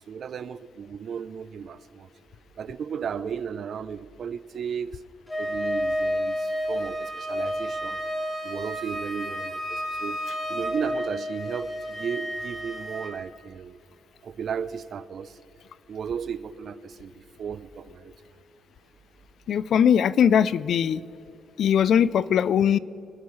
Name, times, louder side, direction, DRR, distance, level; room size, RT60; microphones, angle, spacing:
voice 1, 0.1-2.1 2.6-5.0 5.4-8.0 8.4-10.2 10.5-13.8 14.2-15.4 15.9-18.1, right 7 dB, 55° right, 15 dB, 0.5 m, -35 dB
Wind instrument woodwind instrument, 5.3-13.1, equal, 10° left, 4.0 m, -30 dB
voice 2, 19.5-21.0 21.6-22.8, left 8 dB, 65° left, 19 dB, 0.4 m, -20 dB
25.0 x 12.5 x 3.2 m, 2.7 s
cardioid pair, 90°, 0 cm